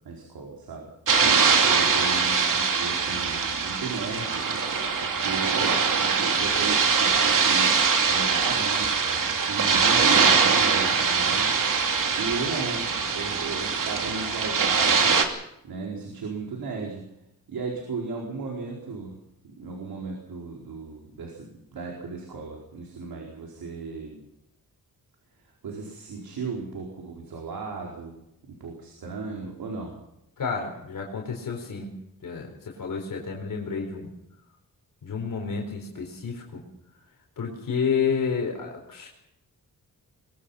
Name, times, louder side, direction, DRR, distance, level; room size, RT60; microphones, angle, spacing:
voice 1, 0.0-0.9 1.6-4.5 5.0-8.9 9.3-11.5 12.2-15.2 15.6-17.0 17.5-19.1 19.6-24.2 25.6-28.2 28.6-29.9, right 4 dB, 90° right, -1 dB, 4.6 m, -35 dB
sound 1, 1.1-15.2, right 5 dB, 65° right, 2.8 m, -22 dB
voice 2, 30.4-31.9 32.2-32.5 32.8-34.1 35.0-36.6 37.4-39.1, left 6 dB, 65° left, 1 dB, 4.4 m, -30 dB
22.5 x 22.0 x 5.8 m, 0.82 s
wide cardioid pair, 115°, 35 cm